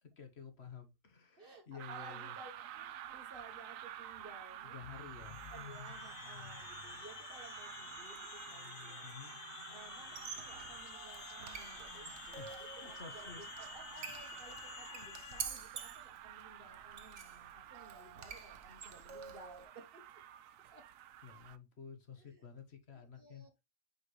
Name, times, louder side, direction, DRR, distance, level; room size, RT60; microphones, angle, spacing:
voice 1, 0.0-2.4 4.6-5.4 9.0-9.3 12.4-12.6 12.8-13.4 21.2-23.5, left 7 dB, 55° left, 1.4 m, -52 dB
voice 2, 1.4-4.8 5.5-9.2 9.7-20.2 20.7-20.9 22.2-22.4 22.9-23.6, right 2 dB, 45° right, 1.4 m, -57 dB
sound 1, 1.8-21.6, right 11 dB, 80° right, 1.0 m, -50 dB
sound 2, 4.8-15.5, left 10 dB, 75° left, 1.0 m, -51 dB
Squeak, 10.0-19.7, right 6 dB, 60° right, 1.2 m, -49 dB
5.8 x 5.3 x 3.1 m
omnidirectional pair, 1.4 m